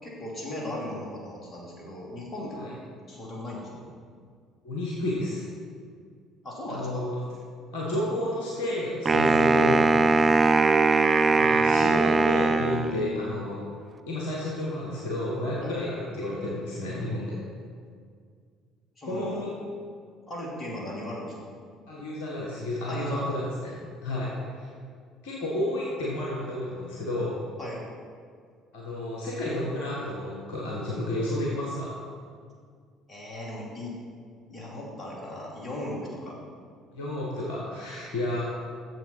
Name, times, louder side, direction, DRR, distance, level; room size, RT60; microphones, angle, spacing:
voice 1, 0.0-2.7 3.1-3.6 6.4-7.0 15.6-15.8 19.0-19.4 20.3-21.5 22.9-23.2 27.6-27.8 33.1-33.9 34.5-36.4, left 1 dB, 35° left, -4 dB, 2.8 m, -37 dB
voice 2, 4.6-5.4 6.7-7.2 7.7-10.1 11.3-13.6 14.1-17.4 19.0-19.5 21.9-23.7 24.0-24.3 24.6-24.7 25.2-27.4 28.7-32.0 36.9-38.5, left 1 dB, 65° left, -5 dB, 1.5 m, -31 dB
Wind instrument woodwind instrument, 9.1-13.3, right 3 dB, 30° right, 0.5 m, -21 dB
7.7 x 7.2 x 5.6 m, 2.1 s
figure-of-eight pair, 55°, 0 cm